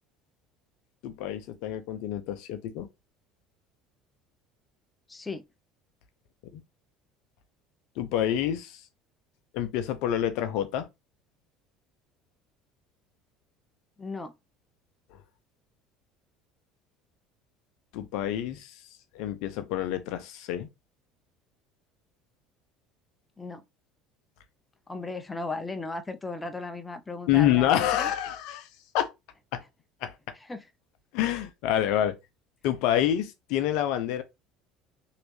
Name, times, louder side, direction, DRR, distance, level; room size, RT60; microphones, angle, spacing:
voice 1, 1.0-2.9 6.5-6.6 8.0-8.8 9.5-10.9 17.9-18.7 19.1-20.7 27.3-28.7 28.9-29.1 29.5-29.6 30.0-30.1 31.1-32.1 32.6-34.2, left 11 dB, 70° left, 0.6 m, -27 dB
voice 2, 5.1-5.4 14.0-14.3 23.4-23.6 24.9-28.1 30.5-30.7, left 3 dB, 15° left, 0.6 m, -36 dB
3.1 x 2.8 x 3.1 m
hypercardioid pair, 75°, 0 cm